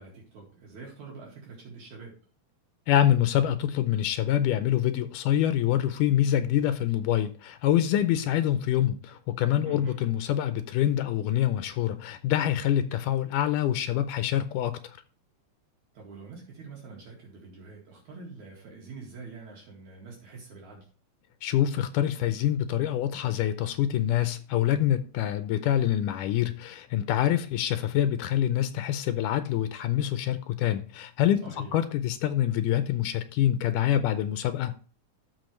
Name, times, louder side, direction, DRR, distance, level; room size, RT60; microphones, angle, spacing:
voice 1, 0.0-2.1 9.6-10.0 15.9-20.8 31.4-31.7, right 4 dB, 70° right, 3.4 m, -45 dB
voice 2, 2.9-15.0 21.4-34.7, left 11 dB, 85° left, 2.1 m, -26 dB
14.0 x 5.1 x 3.1 m
omnidirectional pair, 3.6 m